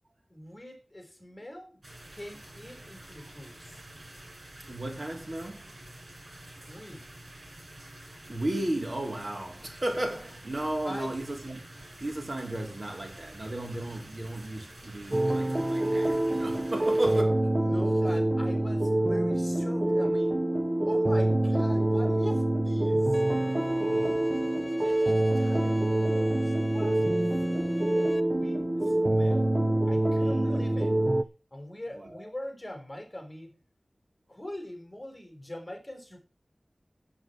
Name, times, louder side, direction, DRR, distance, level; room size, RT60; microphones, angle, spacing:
voice 1, 0.3-1.8 2.1-3.8 6.7-7.1 10.8-11.2 17.6-20.4 20.9-23.2 24.8-27.0 27.4-29.5 29.9-31.0 31.5-33.6 34.3-36.2, left 1 dB, 20° left, 5.7 m, -43 dB
sound 1, 1.8-17.2, right 1 dB, 65° right, 7.3 m, -48 dB
voice 2, 4.7-5.8 8.3-17.5 23.8-24.3 30.2-30.7 32.0-32.3, right 1 dB, 50° right, 3.7 m, -35 dB
sound 2, 15.1-31.2, right 1 dB, 30° right, 1.0 m, -26 dB
Bowed string instrument, 23.1-28.2, left 2 dB, 55° left, 1.3 m, -44 dB
9.5 x 8.9 x 6.2 m
wide cardioid pair, 45°, 0 cm